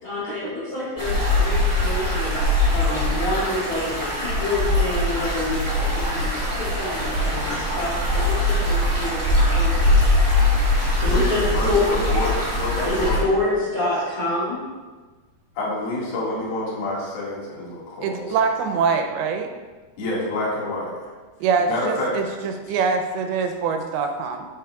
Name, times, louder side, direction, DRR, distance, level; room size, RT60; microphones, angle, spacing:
voice 1, 0.0-10.0 11.0-11.8 12.9-14.6, left 2 dB, 25° left, -12 dB, 2.5 m, -28 dB
sound 1, 1.0-13.2, left 1 dB, 10° left, 1.4 m, -22 dB
voice 2, 11.1-13.6 15.5-18.2 20.0-21.1 21.7-22.1 22.7-22.8, left 2 dB, 50° left, -6 dB, 2.5 m, -28 dB
voice 3, 18.0-19.5 21.4-24.5, right 5 dB, 85° right, 5 dB, 2.6 m, -24 dB
8.4 x 8.2 x 2.3 m, 1.3 s
omnidirectional pair, 4.4 m